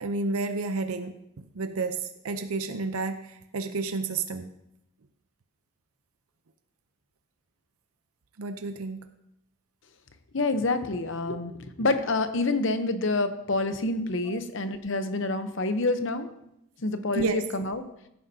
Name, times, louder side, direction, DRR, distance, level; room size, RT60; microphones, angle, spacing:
voice 1, 0.0-4.5 8.4-9.1 14.3-14.4 17.1-17.4, right 3 dB, 90° right, 8 dB, 0.7 m, -31 dB
voice 2, 10.3-16.3 16.8-17.8, left 2 dB, 60° left, 9 dB, 0.8 m, -27 dB
16.0 x 9.5 x 2.8 m, 0.82 s
head